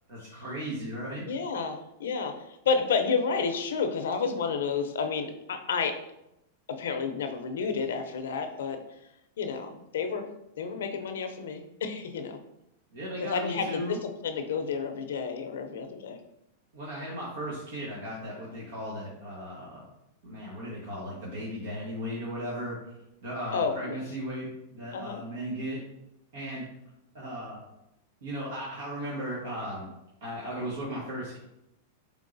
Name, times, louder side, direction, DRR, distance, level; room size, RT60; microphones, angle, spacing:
voice 1, 0.1-1.3 12.9-14.0 16.7-19.8 20.2-22.8 23.2-24.5 24.7-25.8 26.3-26.6 27.1-27.6 28.2-29.9 30.2-31.4, equal, 80° right, -6 dB, 1.3 m, -36 dB
voice 2, 1.3-6.0 6.7-8.8 9.4-10.3 10.6-12.4 13.2-16.2 23.5-24.0 24.9-25.2, left 5 dB, 85° left, 7 dB, 0.5 m, -30 dB
4.6 x 3.5 x 2.6 m, 0.86 s
supercardioid pair, 140°, 0 cm